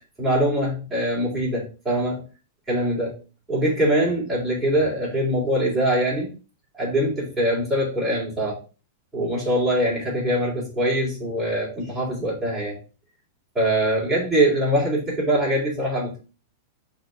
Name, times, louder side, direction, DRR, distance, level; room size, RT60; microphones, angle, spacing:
voice 1, 0.2-2.2 2.7-3.2 3.5-6.3 6.8-8.6 9.1-12.8 13.6-16.2, right 1 dB, 5° right, -7 dB, 3.8 m, -23 dB
5.6 x 3.9 x 5.8 m, 0.33 s
supercardioid pair, 170°, 0 cm